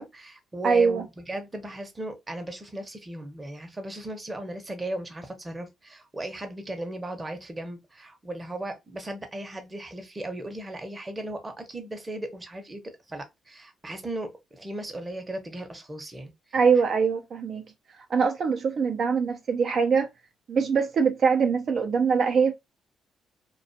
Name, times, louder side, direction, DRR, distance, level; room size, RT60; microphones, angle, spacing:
voice 1, 0.0-16.3, right 1 dB, 20° right, 0.7 m, -36 dB
voice 2, 0.6-1.0 16.5-17.6 18.1-20.1 20.5-22.5, right 5 dB, 55° right, 0.4 m, -23 dB
2.4 x 2.3 x 2.6 m
cardioid pair, 90°, 0 cm